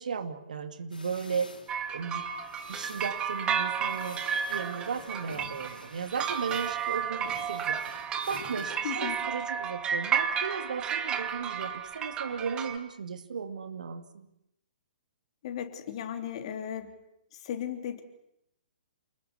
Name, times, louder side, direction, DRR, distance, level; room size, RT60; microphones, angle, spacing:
voice 1, 0.0-1.5 1.9-2.3 2.7-4.2 4.5-7.8 8.3-14.3, right 6 dB, 60° right, 8 dB, 2.5 m, -35 dB
sound 1, 0.9-9.2, left 3 dB, 75° left, 5.4 m, -50 dB
sound 2, 1.7-12.8, right 7 dB, 20° right, 2.2 m, -32 dB
voice 2, 8.8-9.2 15.4-16.9 17.3-18.0, left 9 dB, 40° left, 6 dB, 3.4 m, -36 dB
29.0 x 20.0 x 8.4 m, 0.79 s
figure-of-eight pair, 120°, 5 cm